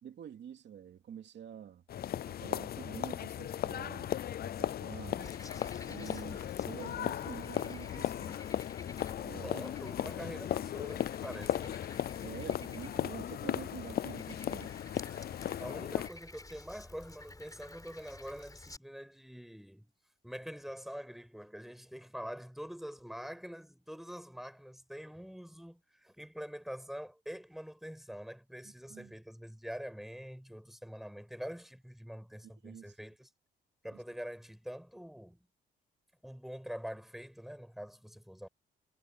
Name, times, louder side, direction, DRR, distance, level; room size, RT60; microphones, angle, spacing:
voice 1, 0.0-1.8 2.3-4.1 4.4-5.3 5.9-8.4 9.2-9.6 12.2-14.7 28.9-29.1 32.4-33.0 33.9-34.0, right 9 dB, 65° right, 2.6 m, -48 dB
sound 1, 1.9-16.1, left 11 dB, 50° left, 0.5 m, -37 dB
Frog, 5.2-18.8, left 2 dB, 20° left, 4.1 m, -52 dB
voice 2, 9.4-11.8 15.6-19.9 20.2-33.3 33.8-35.4 36.2-38.5, equal, ahead, 5.9 m, -45 dB
cardioid pair, 90°, 20 cm